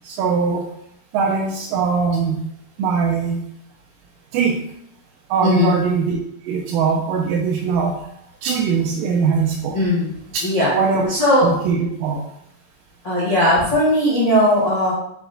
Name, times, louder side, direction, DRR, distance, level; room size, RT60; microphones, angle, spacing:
voice 1, 0.0-0.6 1.1-2.4 2.8-3.4 4.3-4.6 5.3-6.2 6.5-8.0 8.4-9.8 10.3-10.4 10.7-11.1 11.4-12.2, right 5 dB, 85° right, -1 dB, 2.2 m, -21 dB
voice 2, 5.4-5.8 9.7-10.1 10.4-10.7 11.1-11.5 13.0-14.9, left 1 dB, 75° left, -9 dB, 0.6 m, -17 dB
5.8 x 2.1 x 3.8 m, 0.75 s
omnidirectional pair, 3.8 m